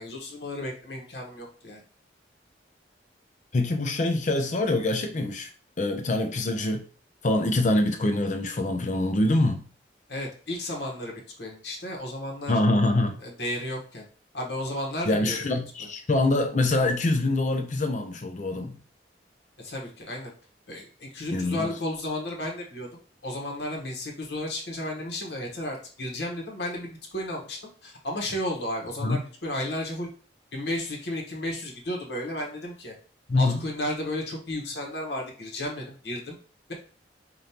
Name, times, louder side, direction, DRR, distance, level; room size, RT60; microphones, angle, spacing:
voice 1, 0.0-1.8 10.1-12.6 13.2-14.0 14.3-15.4 15.8-15.9 19.6-20.3 20.7-22.9 23.2-30.1 30.5-32.9 33.3-36.4, left 1 dB, 70° left, 0 dB, 1.2 m, -33 dB
voice 2, 3.5-5.5 5.8-6.8 7.2-9.6 12.5-13.2 15.1-18.7 21.3-21.7 29.0-29.2 33.3-33.6, left 2 dB, 45° left, 5 dB, 0.5 m, -24 dB
5.1 x 2.6 x 2.8 m, 0.40 s
head